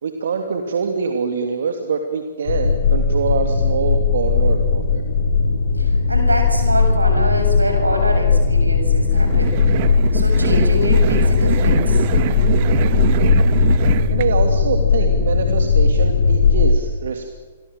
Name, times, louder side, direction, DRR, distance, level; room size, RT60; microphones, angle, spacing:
voice 1, 0.0-5.0 12.7-13.1 14.1-17.3, right 5 dB, 60° right, 4 dB, 2.7 m, -24 dB
sound 1, 2.5-16.7, left 4 dB, 60° left, 2.6 m, -17 dB
voice 2, 5.8-9.6 10.1-12.0, equal, 85° right, 5 dB, 7.4 m, -25 dB
sound 2, 9.1-14.3, right 15 dB, 40° right, 1.0 m, -25 dB
28.5 x 23.5 x 7.6 m, 1.4 s
figure-of-eight pair, 115°, 0 cm